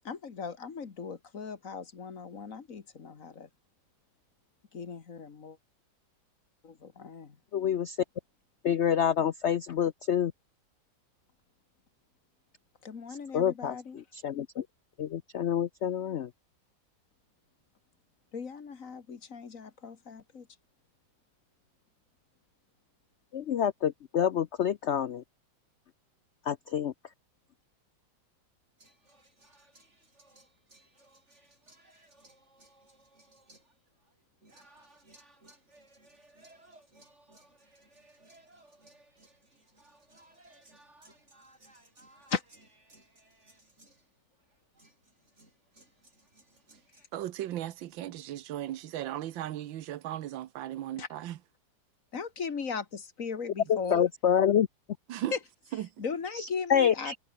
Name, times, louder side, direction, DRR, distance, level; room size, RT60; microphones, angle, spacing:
voice 1, 0.0-3.5 4.7-5.6 6.6-7.4 12.8-14.0 18.3-20.5 42.3-42.4 51.0-51.1 52.1-54.1 55.3-55.4 56.0-57.1, left 5 dB, 45° left, 1.9 m, -38 dB
voice 2, 7.5-8.0 8.6-10.3 13.3-14.6 15.0-16.3 23.3-25.2 26.5-26.9 53.7-54.7 56.4-57.2, left 9 dB, 90° left, 0.6 m, -27 dB
sound 1, 28.8-47.1, right 2 dB, 35° right, 6.3 m, -60 dB
voice 3, 47.1-51.4 55.1-55.3 55.7-55.9, right 12 dB, 85° right, 1.6 m, -36 dB
omnidirectional pair, 2.0 m